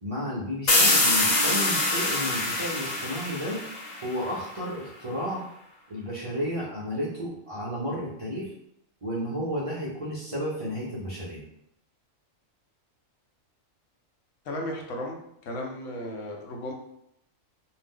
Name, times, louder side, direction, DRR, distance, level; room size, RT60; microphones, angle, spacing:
voice 1, 0.0-3.6 4.0-5.5 5.9-8.5 9.0-11.4, equal, 50° right, -7 dB, 0.4 m, -32 dB
sound 1, 0.7-4.3, left 2 dB, 55° left, 0.5 m, -24 dB
voice 2, 14.4-16.7, left 1 dB, 70° left, 0 dB, 0.9 m, -35 dB
2.6 x 2.1 x 3.5 m, 0.77 s
omnidirectional pair, 1.4 m